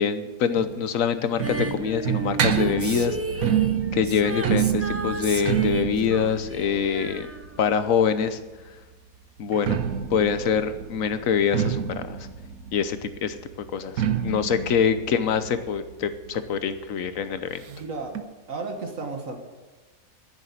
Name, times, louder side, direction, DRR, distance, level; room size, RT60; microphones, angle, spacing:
voice 1, 0.0-3.2 3.9-7.3 7.6-8.4 9.4-9.8 10.1-11.8 12.1-12.2 12.7-13.4 13.7-17.6, left 7 dB, 70° left, 11 dB, 1.2 m, -25 dB
sound 1, 0.6-8.3 9.4-16.8 17.0-17.1 17.4-17.5 18.1-18.2, right 9 dB, 85° right, 1.4 m, -28 dB
Female singing, 1.4-8.0 8.3-8.4, right 2 dB, 20° right, 0.4 m, -34 dB
voice 2, 17.7-18.1 18.5-19.4, right 3 dB, 65° right, 4 dB, 1.9 m, -33 dB
9.9 x 9.9 x 9.4 m, 1.2 s
omnidirectional pair, 1.5 m